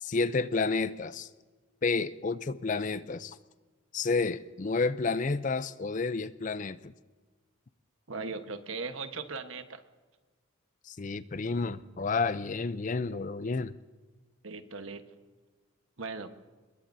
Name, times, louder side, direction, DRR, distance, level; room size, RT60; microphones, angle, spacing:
voice 1, 0.0-1.3 1.8-3.4 3.9-6.9 10.9-13.7, left 4 dB, 35° left, 14 dB, 0.4 m, -30 dB
voice 2, 8.1-9.8 14.4-15.0 16.0-16.3, right 4 dB, 75° right, 8 dB, 1.2 m, -38 dB
25.0 x 21.5 x 2.7 m, 1.4 s
head